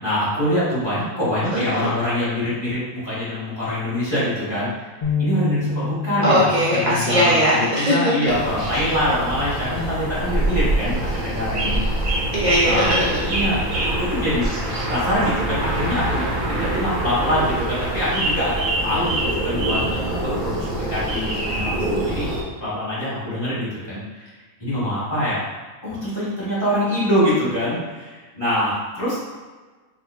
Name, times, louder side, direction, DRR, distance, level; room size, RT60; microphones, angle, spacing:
voice 1, 0.0-4.9 5.2-12.2 12.6-12.9 13.3-14.5 14.9-16.2 16.6-22.3 22.6-24.3 24.6-25.4 25.8-29.2, equal, 20° left, -11 dB, 1.3 m, -24 dB
voice 2, 1.5-1.9 6.2-8.0 12.3-13.3, equal, 90° right, -7 dB, 0.4 m, -19 dB
sound 1, 5.0-11.3, left 5 dB, 50° left, 0.4 m, -31 dB
sound 2, 8.3-22.4, right 1 dB, 45° right, 0.7 m, -25 dB
4.4 x 2.4 x 2.3 m, 1.3 s
omnidirectional pair, 1.5 m